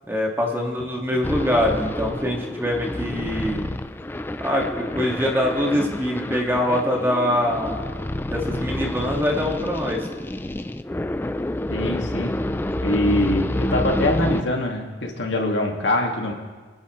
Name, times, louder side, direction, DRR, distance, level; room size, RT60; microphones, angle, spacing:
voice 1, 0.1-3.7 4.4-7.9 8.3-10.1, left 1 dB, 10° right, -1 dB, 1.8 m, -24 dB
sound 1, 1.2-14.4, left 1 dB, 10° left, 0.4 m, -28 dB
voice 2, 11.7-12.3 12.8-16.3, left 1 dB, 80° left, 1 dB, 2.0 m, -23 dB
26.0 x 10.5 x 3.1 m, 1.4 s
head